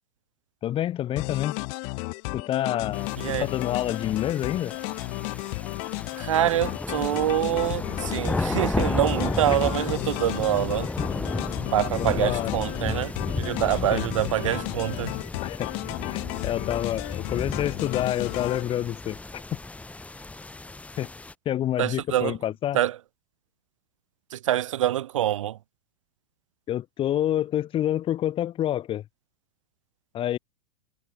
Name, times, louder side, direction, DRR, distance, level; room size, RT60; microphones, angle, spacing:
voice 1, 0.6-1.6 2.3-4.8 9.5-9.6 12.0-12.5 13.6-14.0 15.4-15.8 16.1-19.6 21.0-21.1 21.4-22.8 26.7-29.0 30.1-30.4, left 12 dB, 35° left, 2.8 m, -28 dB
sound 1, 1.2-18.6, left 40 dB or more, 50° left, 1.2 m, -33 dB
sound 2, 2.9-21.3, left 2 dB, 10° left, 5.2 m, -33 dB
voice 2, 6.2-10.9 11.7-15.2 21.8-22.4 22.7-23.0 24.3-25.6, right 12 dB, 70° right, 4.0 m, -25 dB
hypercardioid pair, 105°, 17 cm